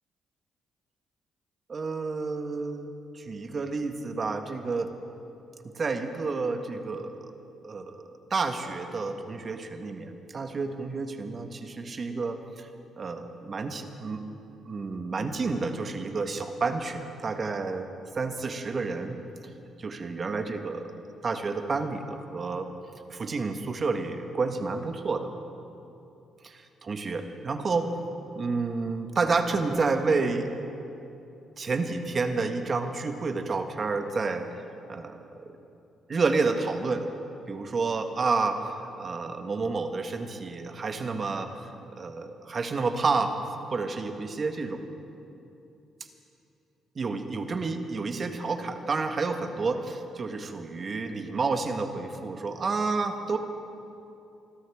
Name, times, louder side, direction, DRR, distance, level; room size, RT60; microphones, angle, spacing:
voice 1, 1.7-2.9 3.1-4.9 5.6-7.2 7.6-8.0 8.3-12.7 13.0-14.2 14.6-17.9 18.1-19.2 19.8-20.9 21.2-22.7 23.1-25.3 26.4-27.9 28.4-30.5 31.6-34.5 34.9-35.6 36.1-37.1 37.5-38.6 39.0-41.5 42.0-43.4 43.7-44.9 46.9-53.4, right 4 dB, 40° right, 6 dB, 1.2 m, -30 dB
27.0 x 13.0 x 3.5 m, 2.8 s
cardioid pair, 90°, 0 cm